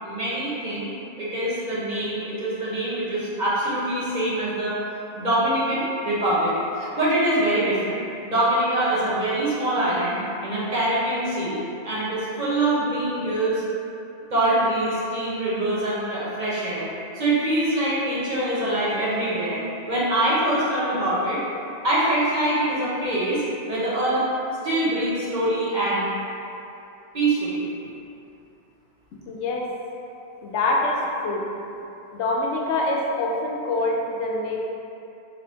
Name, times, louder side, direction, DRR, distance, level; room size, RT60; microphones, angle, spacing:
voice 1, 0.0-0.9 1.2-4.8 5.1-11.6 11.8-13.6 14.3-21.4 21.8-24.2 24.6-26.1 27.1-27.7, right 1 dB, 45° right, -8 dB, 0.9 m, -24 dB
voice 2, 29.3-29.7 30.4-31.4 32.1-34.7, left 2 dB, 80° left, -2 dB, 0.9 m, -25 dB
2.9 x 2.7 x 4.2 m, 2.8 s
omnidirectional pair, 1.2 m